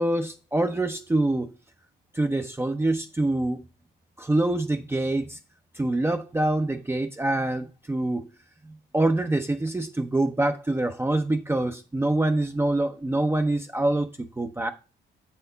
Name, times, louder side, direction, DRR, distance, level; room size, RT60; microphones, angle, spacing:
voice 1, 0.0-1.5 2.1-3.6 4.2-5.4 5.7-8.3 8.6-14.7, right 2 dB, 10° right, 0.6 m, -25 dB
6.8 x 4.4 x 3.9 m
cardioid pair, 90°, 20 cm